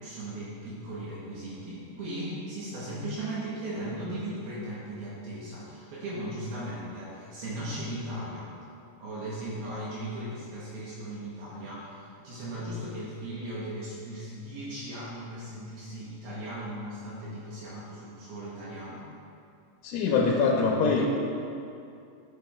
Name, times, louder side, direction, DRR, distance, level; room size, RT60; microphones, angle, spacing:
voice 1, 0.0-8.5 9.0-19.0, right 1 dB, 80° right, -7 dB, 2.2 m, -37 dB
voice 2, 19.8-21.1, left 4 dB, 80° left, -1 dB, 2.8 m, -23 dB
12.0 x 5.9 x 2.3 m, 2.6 s
omnidirectional pair, 5.7 m